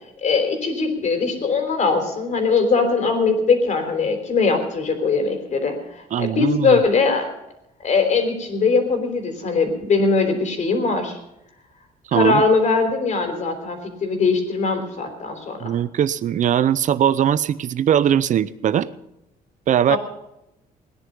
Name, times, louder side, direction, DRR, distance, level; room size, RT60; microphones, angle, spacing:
voice 1, 0.2-7.3 7.8-11.2 12.1-15.7 19.9-20.0, left 4 dB, 50° left, 6 dB, 3.5 m, -21 dB
voice 2, 6.1-6.8 12.1-12.4 15.6-18.9 19.7-20.0, right 9 dB, 55° right, 17 dB, 0.7 m, -20 dB
18.0 x 10.5 x 5.4 m, 0.84 s
cardioid pair, 105°, 16 cm